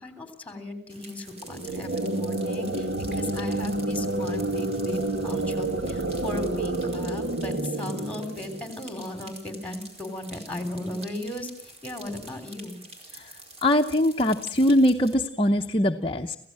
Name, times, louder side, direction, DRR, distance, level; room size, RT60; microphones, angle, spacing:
voice 1, 0.0-12.8, left 1 dB, 10° left, 8 dB, 3.4 m, -36 dB
sound 1, 0.9-15.1, right 2 dB, 35° right, 4.8 m, -47 dB
sound 2, 1.4-9.0, right 2 dB, 75° right, 1.7 m, -29 dB
voice 2, 13.6-16.4, left 1 dB, 30° left, 3 dB, 0.8 m, -22 dB
26.5 x 16.0 x 7.6 m, 0.70 s
head